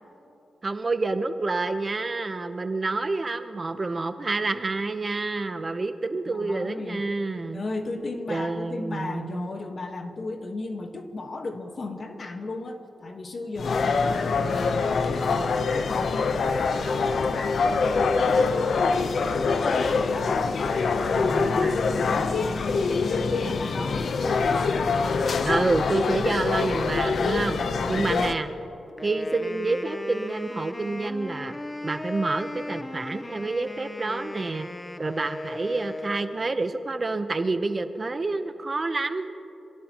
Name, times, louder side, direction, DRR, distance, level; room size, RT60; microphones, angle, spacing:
voice 1, 0.6-7.6 8.3-9.5 21.1-22.3 25.4-27.6 27.9-28.5 29.0-31.6 31.8-34.7 35.0-39.3, right 3 dB, 35° right, 9 dB, 0.8 m, -28 dB
voice 2, 6.3-7.0 7.5-20.4 20.8-21.6 22.0-24.8, left 2 dB, 45° left, 5 dB, 1.4 m, -36 dB
sound 1, 13.6-28.3, left 4 dB, 70° left, 0.8 m, -24 dB
Wind instrument woodwind instrument, 29.0-36.6, left 1 dB, 20° left, 0.7 m, -37 dB
26.5 x 17.0 x 3.0 m, 2.9 s
cardioid pair, 80°, 0 cm